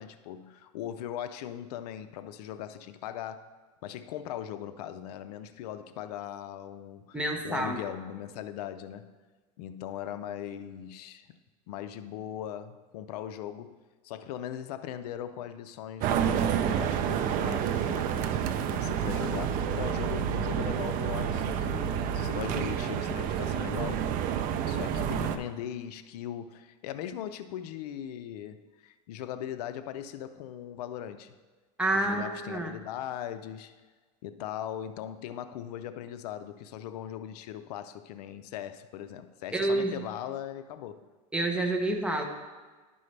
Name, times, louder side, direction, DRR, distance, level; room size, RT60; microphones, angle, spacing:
voice 1, 0.0-3.5 3.8-7.2 7.4-9.2 9.6-11.3 11.7-13.8 14.0-18.4 18.7-24.1 24.7-31.3 31.9-33.7 34.2-41.1, left 10 dB, 80° left, 11 dB, 0.5 m, -39 dB
voice 2, 7.1-7.8 31.8-32.7 39.5-39.9 41.3-42.3, right 2 dB, 5° right, 2 dB, 0.9 m, -28 dB
sound 1, 16.0-25.4, right 8 dB, 45° right, 0.5 m, -29 dB
11.5 x 5.4 x 3.3 m, 1.3 s
supercardioid pair, 135°, 20 cm